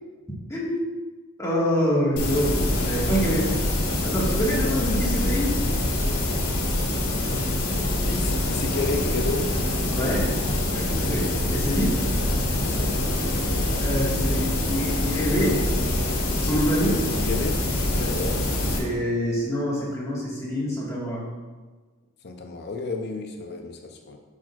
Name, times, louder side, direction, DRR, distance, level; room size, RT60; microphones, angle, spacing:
voice 1, 0.5-0.8 1.4-3.4 4.0-5.5 9.9-10.3 10.7-11.9 13.8-15.6 16.3-17.0 17.9-18.2 18.8-21.2, equal, 15° left, -6 dB, 1.7 m, -26 dB
sound 1, 2.2-18.8, left 1 dB, 90° left, 1.6 m, -25 dB
voice 2, 4.4-4.7 8.1-9.5 12.6-13.0 17.2-17.6 18.1-18.4 22.2-24.2, left 3 dB, 50° left, 4 dB, 0.6 m, -32 dB
10.5 x 6.2 x 2.4 m, 1.3 s
head